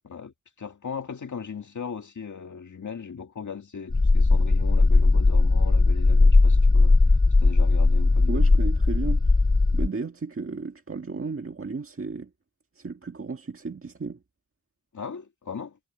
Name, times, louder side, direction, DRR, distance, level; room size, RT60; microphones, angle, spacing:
voice 1, 0.0-7.0 7.4-8.5 14.9-15.8, left 6 dB, 85° left, 2.0 m, -38 dB
sound 1, 3.9-9.9, left 3 dB, 15° left, 0.4 m, -18 dB
voice 2, 8.3-9.2 9.7-12.3 12.8-14.2, right 4 dB, 50° right, 1.7 m, -34 dB
wide cardioid pair, 70°, 29 cm